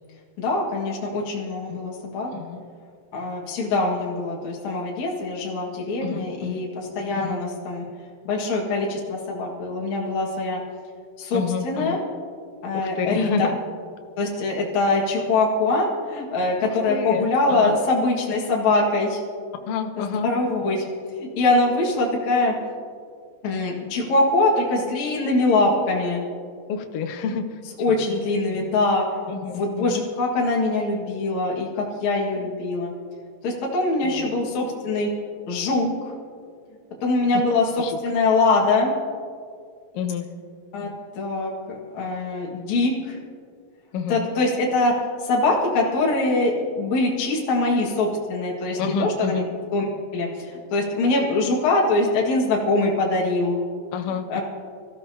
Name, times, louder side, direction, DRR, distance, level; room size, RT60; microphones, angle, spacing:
voice 1, 0.4-2.3 3.1-7.8 8.2-10.6 11.2-12.0 12.6-13.5 14.2-19.2 20.0-20.8 21.1-22.5 23.4-26.2 27.8-32.9 33.4-35.1 35.5-36.1 37.0-38.9 40.7-41.5 41.9-43.2 44.1-49.4 49.7-49.9 50.1-53.6 54.3-54.4, left 2 dB, 55° left, -3 dB, 3.0 m, -23 dB
voice 2, 6.0-6.6 7.2-7.4 11.3-12.0 12.7-13.6 16.9-17.8 19.7-20.3 26.7-27.5 29.3-30.0 34.0-34.4 37.8-38.0 39.9-40.3 43.9-44.3 48.8-49.5 53.9-54.4, left 6 dB, 80° left, 6 dB, 1.3 m, -29 dB
27.5 x 14.5 x 2.9 m, 2.1 s
omnidirectional pair, 4.1 m